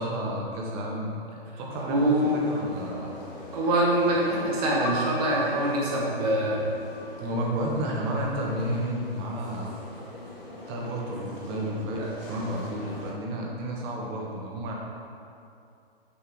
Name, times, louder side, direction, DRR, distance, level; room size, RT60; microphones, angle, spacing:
voice 1, 0.0-3.2 7.2-10.1 10.4-14.7, right 1 dB, 25° right, -2 dB, 0.9 m, -32 dB
sound 1, 1.7-13.1, left 1 dB, 60° left, 1.5 m, -43 dB
voice 2, 1.9-2.3 3.5-6.6 12.0-12.1, right 1 dB, 40° right, -4 dB, 1.5 m, -24 dB
sound 2, 4.8-8.7 9.5-10.2, right 1 dB, 45° left, 0.7 m, -40 dB
6.1 x 5.6 x 3.5 m, 2.6 s
hypercardioid pair, 135°, 31 cm